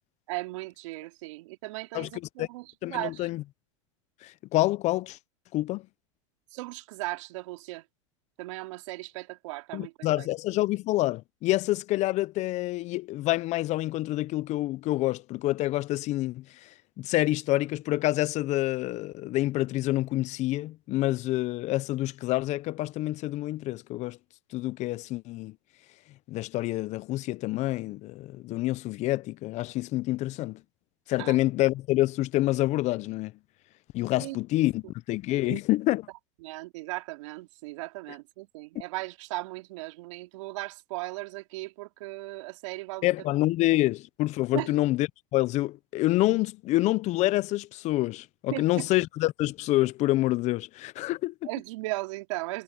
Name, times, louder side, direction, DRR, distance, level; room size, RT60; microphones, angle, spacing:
voice 1, 0.3-3.3 6.5-7.8 8.4-10.3 31.2-31.4 34.2-34.7 35.4-35.6 36.4-43.1 44.5-44.7 48.5-48.9 51.4-52.6, right 22 dB, 70° right, 3.1 m, -37 dB
voice 2, 2.8-3.4 4.2-5.2 5.5-5.8 9.7-16.7 17.0-24.2 24.5-25.5 26.3-30.6 31.1-33.3 33.9-34.8 35.1-36.0 43.0-51.3, left 17 dB, 45° left, 0.8 m, -27 dB
hypercardioid pair, 105°, 17 cm